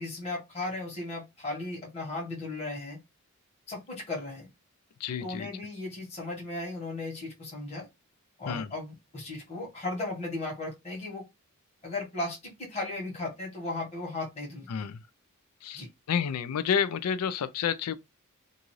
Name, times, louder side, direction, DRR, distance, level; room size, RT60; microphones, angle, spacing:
voice 1, 0.0-3.0 3.7-4.5 5.2-7.9 8.4-11.3 11.8-14.7 15.7-15.9, left 2 dB, 30° left, 1.2 m, -36 dB
voice 2, 5.0-5.5 8.5-8.7 14.7-15.0 15.6-18.0, left 7 dB, 90° left, 0.4 m, -30 dB
2.6 x 2.4 x 3.0 m
head